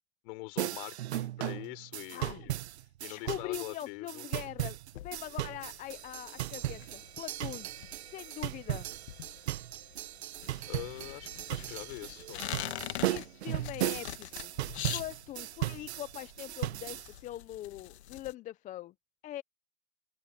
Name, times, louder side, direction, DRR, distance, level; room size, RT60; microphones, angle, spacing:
voice 1, 0.2-2.6 3.0-4.2 10.7-12.5, left 24 dB, 55° left, 4.8 m, -44 dB
sound 1, 0.6-17.1, right 14 dB, 75° right, 0.9 m, -37 dB
voice 2, 2.1-2.5 3.1-4.8 5.0-7.7 8.0-8.9 13.1-14.5 14.9-18.9 19.2-19.4, left 14 dB, 25° left, 0.6 m, -42 dB
sound 2, 4.9-18.3, left 13 dB, 75° left, 1.5 m, -44 dB
open air
hypercardioid pair, 135°, 33 cm